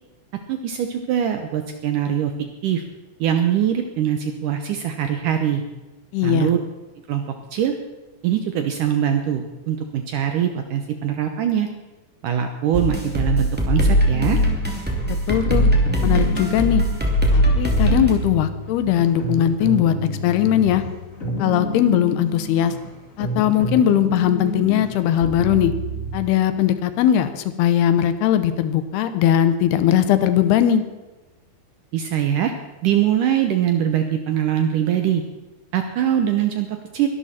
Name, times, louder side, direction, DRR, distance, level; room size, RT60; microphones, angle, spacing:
voice 1, 0.5-2.3 2.6-2.8 3.2-5.6 6.2-6.6 7.1-7.2 7.5-7.8 8.2-11.7 12.2-14.4 31.9-32.5 32.8-35.2 35.7-37.1, right 10 dB, 70° right, 6 dB, 2.0 m, -22 dB
voice 2, 6.1-6.5 15.1-15.6 16.0-16.8 17.3-19.9 20.2-20.8 21.4-22.7 23.2-25.7 26.1-30.8, left 10 dB, 80° left, 11 dB, 2.9 m, -19 dB
sound 1, 12.7-18.1, equal, 5° right, 1.3 m, -20 dB
sound 2, 14.1-26.2, right 1 dB, 25° left, 2.0 m, -30 dB
22.0 x 12.5 x 4.3 m, 1.1 s
omnidirectional pair, 4.7 m